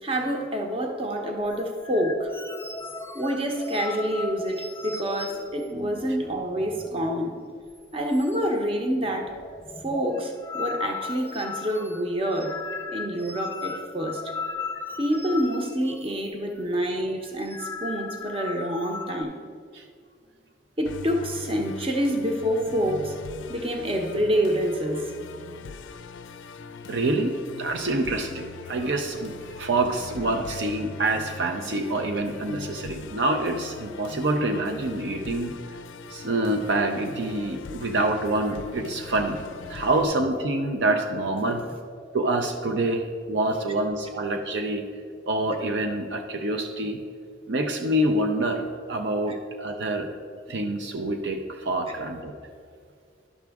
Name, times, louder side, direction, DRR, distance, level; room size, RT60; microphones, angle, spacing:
voice 1, 0.0-2.3 3.1-7.4 7.9-9.4 9.8-12.6 12.9-14.2 15.0-19.4 20.8-23.1 23.5-25.1, equal, 30° right, 2 dB, 0.8 m, -27 dB
sound 1, 1.5-7.4 7.7-7.8 8.1-8.7 9.0-16.3 16.6-16.8 17.3-19.2, left 4 dB, 10° left, 0.3 m, -37 dB
Musical instrument, 20.8-40.0, left 5 dB, 85° left, 0.4 m, -41 dB
voice 2, 26.9-35.6 36.1-39.4 39.7-41.6 42.1-44.8 45.3-47.0 47.5-50.1 50.5-52.3, right 2 dB, 65° right, 4 dB, 0.5 m, -26 dB
11.0 x 6.0 x 3.5 m, 2.1 s
head